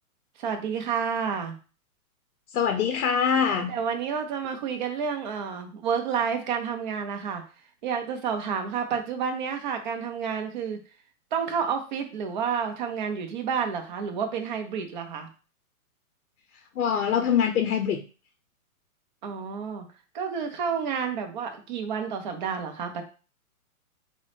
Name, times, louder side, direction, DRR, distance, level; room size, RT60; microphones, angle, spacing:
voice 1, 0.4-1.6 3.3-7.4 7.8-10.8 11.3-15.3 19.2-19.8 20.1-23.0, right 6 dB, 35° right, 5 dB, 0.5 m, -30 dB
voice 2, 2.5-3.7 16.8-18.0, left 7 dB, 90° left, 5 dB, 0.6 m, -24 dB
3.7 x 2.0 x 3.2 m, 0.37 s
hypercardioid pair, 145°, 43 cm